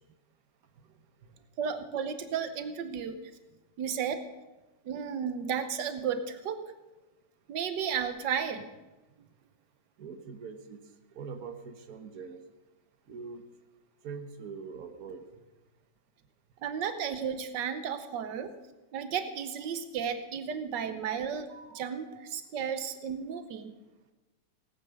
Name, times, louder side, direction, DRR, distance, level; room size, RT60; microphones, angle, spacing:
voice 1, 1.6-3.2 3.8-4.2 4.8-6.7 7.5-8.7 16.6-18.6 18.9-23.7, right 7 dB, 90° right, 9 dB, 1.5 m, -33 dB
voice 2, 10.0-10.8 11.1-12.4 13.1-13.4 14.0-15.2, right 5 dB, 60° right, 7 dB, 1.6 m, -42 dB
17.0 x 9.6 x 6.5 m, 1.1 s
omnidirectional pair, 1.9 m